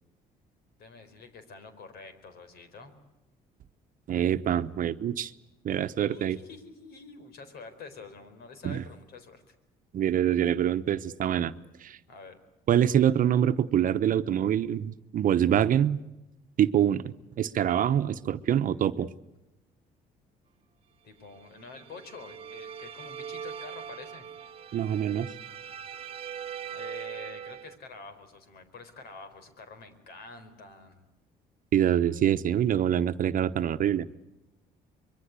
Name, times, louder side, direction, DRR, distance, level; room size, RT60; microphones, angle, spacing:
voice 1, 0.8-3.0 6.1-9.5 12.1-12.4 21.0-24.3 26.7-31.1, left 4 dB, 70° left, 11 dB, 4.5 m, -47 dB
voice 2, 4.1-5.3 5.6-6.4 8.6-8.8 9.9-11.5 11.8-12.0 12.7-16.0 16.6-19.1 24.7-25.3 31.7-34.1, right 10 dB, 55° right, 10 dB, 1.0 m, -25 dB
sound 1, 21.5-27.8, right 8 dB, 35° right, 1.3 m, -41 dB
25.0 x 22.5 x 8.3 m, 0.95 s
cardioid pair, 110°, 17 cm